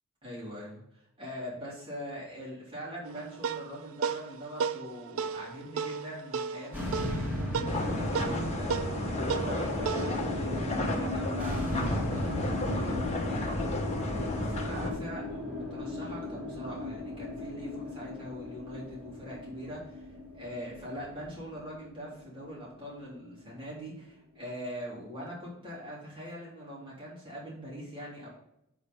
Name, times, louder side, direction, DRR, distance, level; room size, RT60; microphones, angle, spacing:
voice 1, 0.2-20.1 20.3-28.3, equal, 25° right, -6 dB, 3.6 m, -42 dB
sound 1, 3.0-11.8, right 6 dB, 70° right, 0.4 m, -36 dB
sound 2, 6.7-23.1, left 1 dB, 10° right, 2.8 m, -36 dB
sound 3, 7.7-14.9, left 1 dB, 30° left, 1.4 m, -33 dB
8.2 x 4.8 x 5.5 m, 0.80 s
head